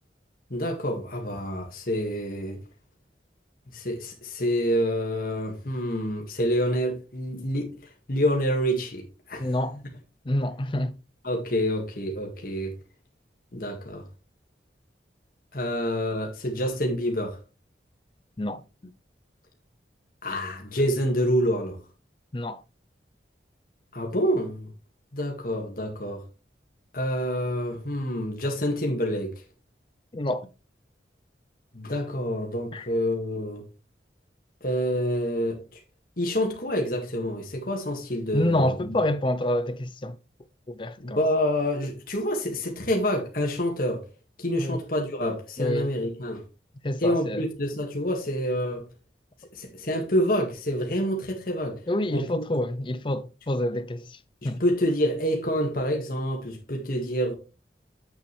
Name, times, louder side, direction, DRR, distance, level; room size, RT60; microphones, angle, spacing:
voice 1, 0.5-2.6 3.7-7.8 8.1-9.5 11.2-12.7 13.5-14.0 15.5-17.4 20.2-21.8 23.9-24.7 25.1-26.2 26.9-29.3 31.7-33.6 34.6-35.8 36.2-38.9 41.0-44.1 44.4-46.4 47.0-48.8 49.5-51.8 52.1-52.4 54.4-57.3, equal, 50° left, 1.8 m, -27 dB
voice 2, 9.4-9.8 10.3-10.9 18.4-18.6 22.3-22.6 30.1-30.5 32.7-32.9 38.3-40.2 40.7-41.2 44.6-44.8 45.6-45.9 46.8-47.4 51.9-54.2 54.4-54.6, left 1 dB, 30° left, 0.5 m, -27 dB
8.0 x 6.9 x 3.2 m
head